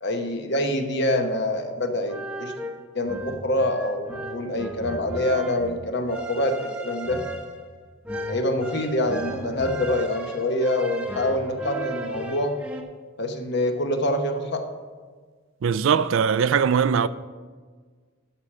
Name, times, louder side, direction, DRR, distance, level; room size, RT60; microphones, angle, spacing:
voice 1, 0.0-2.7 2.9-7.2 8.3-12.6 13.2-14.7, left 1 dB, 55° left, 1.0 m, -25 dB
sound 1, 1.9-12.8, right 1 dB, 5° right, 0.8 m, -35 dB
voice 2, 15.6-17.1, right 6 dB, 65° right, 0.4 m, -20 dB
12.5 x 4.8 x 7.3 m
head